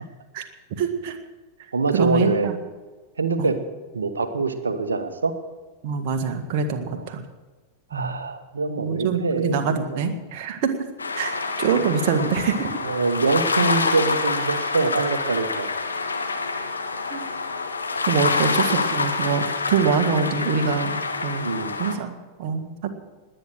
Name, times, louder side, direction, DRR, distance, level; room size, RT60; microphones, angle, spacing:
voice 1, 0.7-1.2 1.9-2.6 3.4-3.5 5.8-7.2 7.9-8.2 8.8-10.7 11.2-12.7 17.1-17.2 18.1-21.5 21.8-22.1 22.4-22.9, right 5 dB, 45° right, 6 dB, 1.8 m, -24 dB
voice 2, 1.7-2.5 3.2-3.6 3.9-5.3 6.9-7.1 7.9-10.1 12.8-15.7 18.2-18.4 19.7-19.9 21.4-21.7, right 4 dB, 75° right, 9 dB, 1.4 m, -24 dB
sound 1, 11.0-21.9, left 4 dB, 75° left, 1.5 m, -26 dB
19.5 x 9.2 x 6.5 m, 1.3 s
figure-of-eight pair, 90°, 0 cm